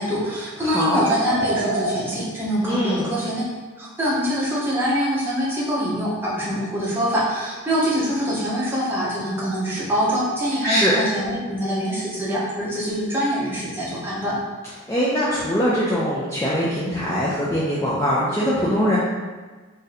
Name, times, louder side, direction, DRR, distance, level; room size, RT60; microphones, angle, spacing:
voice 1, 0.0-3.4 3.8-14.4, equal, 10° right, -7 dB, 0.7 m, -24 dB
voice 2, 0.6-1.0 2.6-3.1 10.6-10.9 14.9-19.0, equal, 15° left, -8 dB, 0.3 m, -22 dB
sound 1, 0.8-2.0, right 2 dB, 75° right, 0.5 m, -25 dB
2.6 x 2.6 x 4.0 m, 1.3 s
head